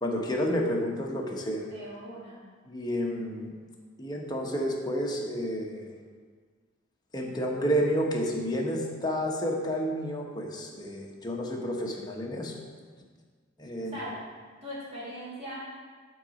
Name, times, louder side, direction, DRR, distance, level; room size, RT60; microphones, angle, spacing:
voice 1, 0.0-1.7 2.7-3.5 4.0-6.0 7.1-12.5 13.6-13.9, equal, 20° left, -1 dB, 1.0 m, -30 dB
voice 2, 1.7-2.4 13.8-14.1 14.6-15.6, equal, 30° right, -9 dB, 2.5 m, -40 dB
10.5 x 3.9 x 5.1 m, 1.5 s
head